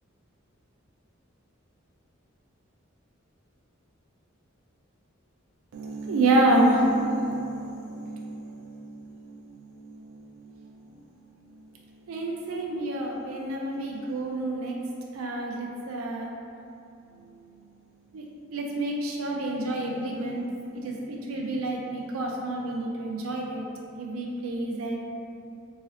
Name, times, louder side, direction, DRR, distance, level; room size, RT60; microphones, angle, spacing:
voice 1, 5.7-10.7 12.1-14.7 15.1-16.3 18.1-18.2 18.5-20.5 20.7-23.7 24.0-25.0, right 1 dB, 90° right, -1 dB, 0.4 m, -28 dB
3.7 x 2.7 x 3.1 m, 2.7 s
head